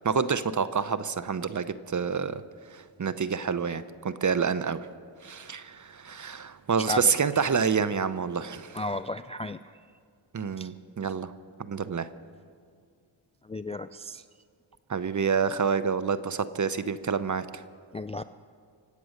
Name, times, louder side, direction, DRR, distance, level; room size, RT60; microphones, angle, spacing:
voice 1, 0.0-2.4 2.7-4.9 5.2-8.9 10.3-11.3 11.7-12.1 14.9-17.6, right 6 dB, 40° right, 14 dB, 0.8 m, -28 dB
voice 2, 8.7-9.6 10.6-10.7 13.5-14.2 17.9-18.2, left 1 dB, 15° left, 12 dB, 0.3 m, -33 dB
25.0 x 8.5 x 6.5 m, 2.2 s
cardioid pair, 65°, 47 cm